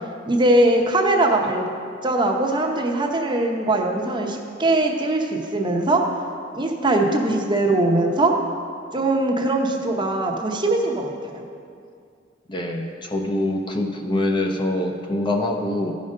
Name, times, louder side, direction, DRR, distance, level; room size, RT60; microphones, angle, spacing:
voice 1, 0.3-1.7 2.0-6.0 6.5-8.3 8.9-11.4, right 2 dB, 25° right, 2 dB, 0.8 m, -21 dB
voice 2, 12.5-15.9, left 1 dB, 25° left, 3 dB, 0.6 m, -24 dB
13.0 x 5.2 x 5.3 m, 2.3 s
head